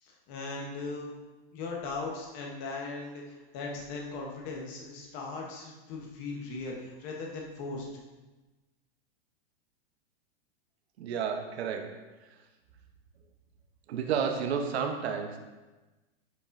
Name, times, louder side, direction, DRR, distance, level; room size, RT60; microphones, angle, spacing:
voice 1, 0.0-1.1 1.5-7.9, left 3 dB, 25° left, -1 dB, 0.8 m, -38 dB
voice 2, 11.0-12.1 13.9-15.4, right 7 dB, 90° right, 4 dB, 0.9 m, -31 dB
8.2 x 5.0 x 2.5 m, 1.2 s
supercardioid pair, 180°, 31 cm